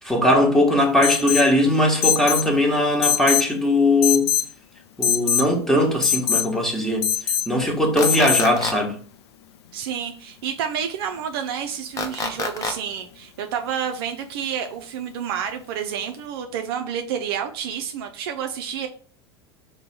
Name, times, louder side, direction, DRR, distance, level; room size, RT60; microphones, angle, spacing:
voice 1, 0.0-4.3 5.0-7.1 7.5-9.0, left 1 dB, 5° left, 1.2 m, -19 dB
Alarm, 1.0-1.5 2.0-2.5 3.0-3.5 4.0-4.5 5.0-5.5 6.0-6.5 7.0-7.5 8.0-8.5, left 8 dB, 70° left, 0.4 m, -22 dB
sound 1, 8.0-8.7 12.0-12.7, left 4 dB, 25° left, 0.8 m, -27 dB
voice 2, 9.7-18.9, right 8 dB, 60° right, 0.5 m, -29 dB
5.2 x 2.2 x 4.2 m
figure-of-eight pair, 80°, 14 cm